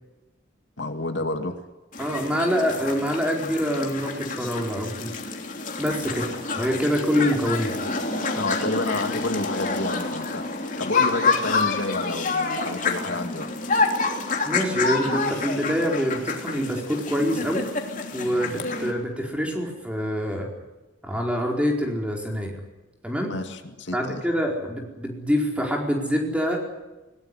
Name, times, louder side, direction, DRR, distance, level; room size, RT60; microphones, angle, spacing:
voice 1, 0.8-1.6 8.3-13.6 23.3-24.3, left 2 dB, 75° left, 6 dB, 2.2 m, -30 dB
sound 1, 1.9-18.9, left 3 dB, 40° left, 3.2 m, -28 dB
voice 2, 2.0-5.1 5.8-7.7 14.4-17.7 18.1-20.5 21.0-22.5 23.0-23.3 23.9-26.6, equal, 5° right, 0 dB, 4.5 m, -25 dB
21.0 x 20.0 x 10.0 m, 1.1 s
head